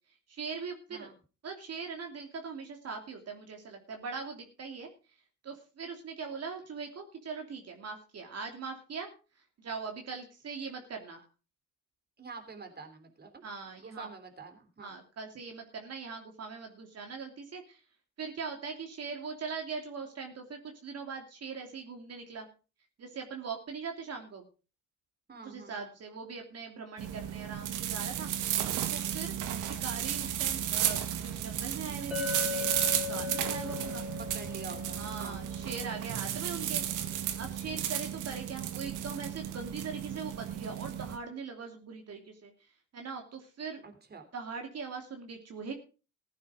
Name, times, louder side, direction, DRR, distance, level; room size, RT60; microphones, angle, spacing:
voice 1, 0.3-1.1 1.4-4.9 5.4-9.1 9.6-11.2 13.4-14.1 14.8-17.8 18.2-22.5 23.0-24.5 25.4-28.3 28.9-29.3 29.8-34.0 35.0-36.9 37.3-42.5 42.9-43.8 44.3-45.7, right 5 dB, 55° right, 3 dB, 3.0 m, -41 dB
voice 2, 12.2-13.4 13.8-15.0 25.3-25.9 29.5-29.9 34.2-35.4 43.8-44.3, right 4 dB, 30° right, 6 dB, 3.3 m, -47 dB
sound 1, 27.0-41.2, right 10 dB, 85° right, 1.8 m, -34 dB
Chink clink, 32.1-36.4, left 8 dB, 5° right, 4.9 m, -39 dB
15.5 x 9.2 x 5.0 m, 0.34 s
cardioid pair, 90°, 30 cm